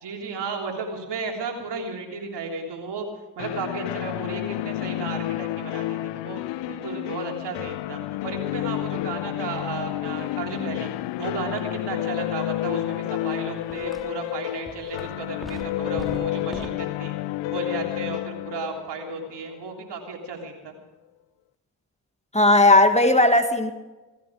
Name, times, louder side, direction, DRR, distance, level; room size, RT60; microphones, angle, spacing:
voice 1, 0.0-3.1 3.4-6.4 6.7-10.9 11.2-17.1 17.5-20.8, right 4 dB, 70° right, 1 dB, 3.5 m, -34 dB
sound 1, 3.4-20.1, left 16 dB, 80° left, 0.6 m, -30 dB
sound 2, 13.3-13.4 13.7-14.3 14.7-16.7, equal, ahead, 2.9 m, -40 dB
voice 2, 22.3-23.7, left 2 dB, 15° left, 7 dB, 1.8 m, -16 dB
18.0 x 15.5 x 5.0 m, 1.1 s
supercardioid pair, 45°, 42 cm